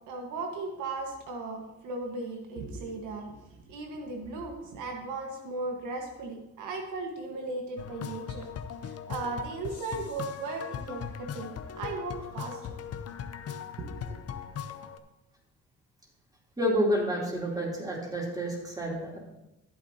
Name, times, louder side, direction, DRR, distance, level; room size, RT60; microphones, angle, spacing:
voice 1, 0.1-3.4 3.7-8.5 9.1-12.6 13.8-14.2, right 3 dB, 90° right, 2 dB, 1.6 m, -36 dB
sound 1, 7.8-15.0, left 8 dB, 55° left, 0.8 m, -39 dB
voice 2, 16.6-19.2, equal, 10° right, -3 dB, 3.3 m, -29 dB
14.0 x 8.5 x 2.9 m, 0.93 s
cardioid pair, 90°, 30 cm